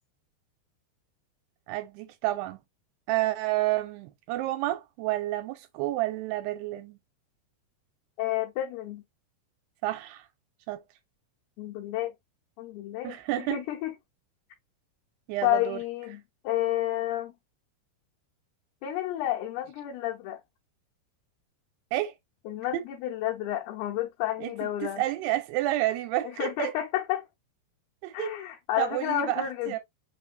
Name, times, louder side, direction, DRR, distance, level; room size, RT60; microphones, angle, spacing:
voice 1, 1.7-2.6 3.1-7.0 9.8-10.2 10.7-10.8 13.0-13.6 15.3-15.8 21.9-22.1 22.7-22.8 24.4-24.5 24.8-26.7 28.0-28.3 28.8-29.8, right 16 dB, 90° right, 2.7 m, -30 dB
voice 2, 8.2-9.0 11.6-12.1 12.6-13.9 15.4-17.3 18.8-20.4 22.5-25.0 26.2-27.3 28.1-29.8, left 13 dB, 75° left, 2.7 m, -31 dB
5.9 x 3.3 x 2.5 m
omnidirectional pair, 4.8 m